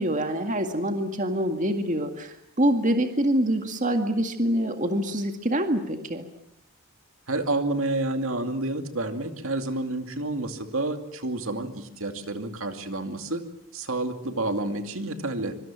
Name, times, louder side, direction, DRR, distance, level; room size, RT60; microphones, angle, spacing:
voice 1, 0.0-6.2, right 1 dB, 35° right, 5 dB, 2.1 m, -25 dB
voice 2, 7.3-13.4 13.7-15.6, right 2 dB, 65° right, 7 dB, 2.5 m, -29 dB
25.5 x 25.0 x 7.5 m, 0.76 s
head